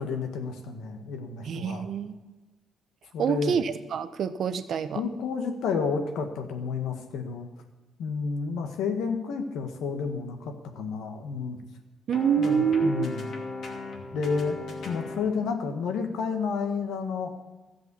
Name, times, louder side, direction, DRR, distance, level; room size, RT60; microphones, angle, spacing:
voice 1, 0.0-1.9 3.1-3.5 4.9-7.5 8.0-11.6 12.4-13.3 14.1-14.6 14.8-17.3, left 5 dB, 80° left, 6 dB, 1.7 m, -30 dB
voice 2, 1.4-2.3 3.2-5.0 12.1-13.1, right 7 dB, 65° right, 12 dB, 0.9 m, -26 dB
sound 1, 12.1-15.3, left 3 dB, 60° left, 2.7 m, -37 dB
13.5 x 7.7 x 7.1 m, 1.2 s
cardioid pair, 90°, 0 cm